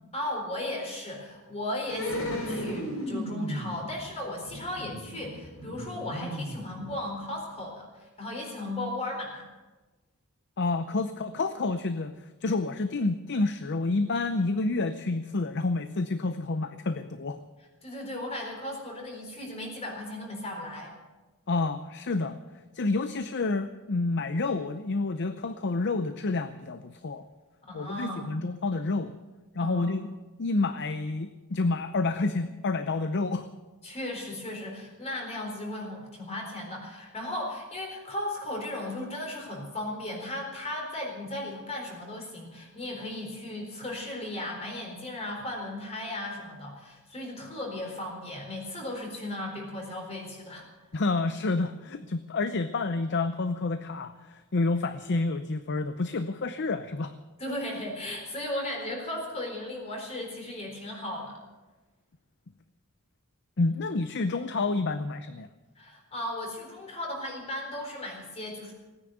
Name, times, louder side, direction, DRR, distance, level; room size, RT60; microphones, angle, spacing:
voice 1, 0.1-9.5 17.8-21.0 27.6-28.3 29.6-29.9 33.8-50.7 57.4-61.4 65.8-68.7, left 1 dB, 30° left, 0 dB, 4.1 m, -36 dB
sound 1, 1.9-7.3 7.6-7.7, equal, 75° left, 5.8 m, -35 dB
voice 2, 10.6-12.1 12.4-17.4 21.5-22.4 22.7-27.2 27.7-29.1 29.5-30.1 30.4-33.5 50.9-57.1 63.6-65.5, left 3 dB, 50° left, 11 dB, 0.6 m, -29 dB
17.5 x 9.8 x 8.0 m, 1.2 s
head